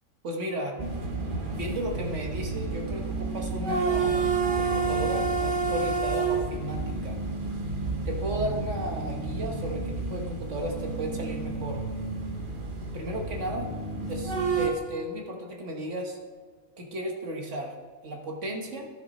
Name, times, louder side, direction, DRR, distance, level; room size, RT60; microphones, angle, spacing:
voice 1, 0.2-0.7 1.5-4.2 4.5-7.2 8.1-11.8 12.9-13.7 14.1-16.2 16.8-17.7 18.0-18.9, equal, 60° right, 1 dB, 1.4 m, -34 dB
sound 1, 0.8-14.7, right 4 dB, 40° right, 1.2 m, -30 dB
11.5 x 6.9 x 4.1 m, 1.5 s
omnidirectional pair, 1.4 m